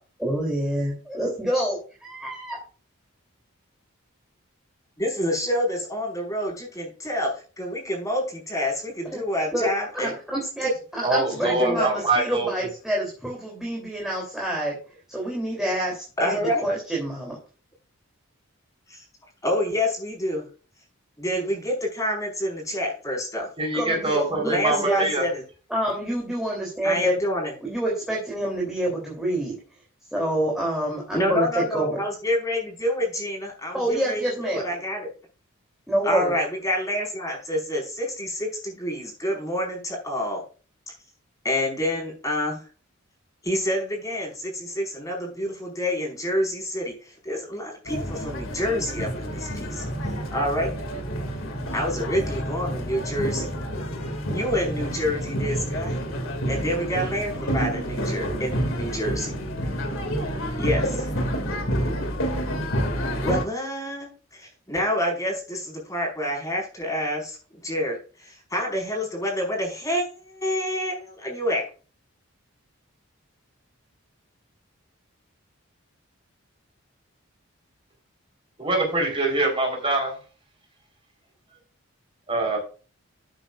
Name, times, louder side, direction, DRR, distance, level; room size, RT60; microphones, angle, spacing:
voice 1, 0.2-2.6 9.0-9.2 9.5-9.7 9.9-14.7 15.1-17.4 23.7-25.1 25.7-27.1 27.6-29.5 30.1-32.0 33.7-34.6 35.9-36.3, right 1 dB, ahead, -3 dB, 3.2 m, -27 dB
voice 2, 5.0-10.2 10.6-10.7 11.4-11.9 16.2-16.7 18.9-19.0 19.4-20.4 21.2-23.5 24.4-25.4 26.8-27.5 31.1-35.1 36.0-40.4 41.4-42.6 43.4-50.7 51.7-53.5 54.1-56.0 56.4-59.3 60.6-61.1 61.7-61.9 63.2-67.4 67.6-71.6, left 1 dB, 15° left, 0 dB, 5.0 m, -28 dB
voice 3, 11.0-12.5 23.6-25.2 78.6-80.1 82.3-82.6, right 2 dB, 25° right, 1 dB, 4.2 m, -24 dB
sound 1, 47.9-63.4, equal, 65° left, 2.4 m, -29 dB
13.0 x 8.9 x 2.5 m, 0.36 s
head